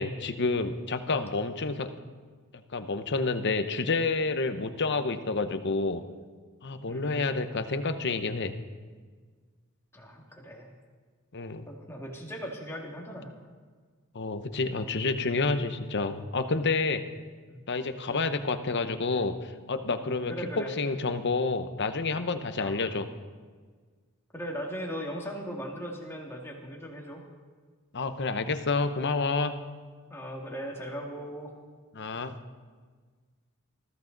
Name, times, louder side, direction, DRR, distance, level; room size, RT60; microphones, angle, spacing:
voice 1, 0.0-1.9 2.7-6.0 6.6-8.6 11.3-11.6 14.1-17.0 17.7-23.1 27.9-29.6 31.9-32.3, left 3 dB, 50° left, 9 dB, 0.9 m, -29 dB
voice 2, 6.9-7.3 9.9-10.7 11.7-13.3 17.5-17.7 18.1-18.2 20.3-20.8 22.6-22.8 24.3-27.2 30.1-31.5, equal, 10° left, -1 dB, 2.1 m, -38 dB
19.5 x 14.5 x 4.0 m, 1.5 s
head